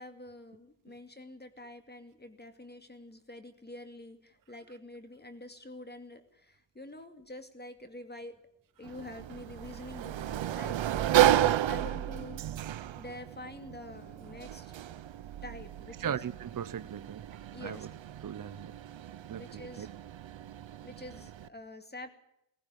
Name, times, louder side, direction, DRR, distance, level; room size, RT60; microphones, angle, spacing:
voice 1, 0.0-8.4 8.8-12.4 12.9-14.7 15.4-16.2 17.5-17.9 19.3-19.9 20.8-22.1, left 1 dB, 20° left, 7 dB, 2.4 m, -47 dB
Sliding door, 8.8-21.5, right 12 dB, 80° right, 1.0 m, -32 dB
voice 2, 16.0-17.9 18.2-18.7 19.3-19.9, right 9 dB, 45° right, 14 dB, 0.8 m, -39 dB
19.0 x 16.5 x 9.2 m, 0.80 s
cardioid pair, 95°, 45 cm